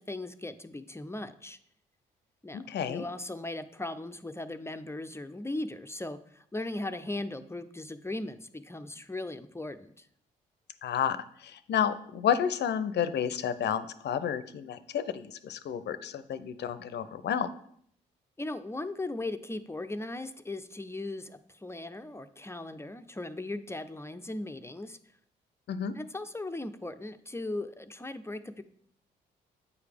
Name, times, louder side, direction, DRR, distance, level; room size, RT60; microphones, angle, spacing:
voice 1, 0.0-1.6 2.4-2.6 2.9-10.1 18.4-25.0 25.9-28.6, left 2 dB, 10° left, 10 dB, 0.5 m, -38 dB
voice 2, 2.5-3.1 10.8-11.2 11.4-17.5 25.7-25.9, left 8 dB, 55° left, 14 dB, 0.6 m, -31 dB
8.3 x 4.8 x 3.5 m, 0.64 s
hypercardioid pair, 50°, 21 cm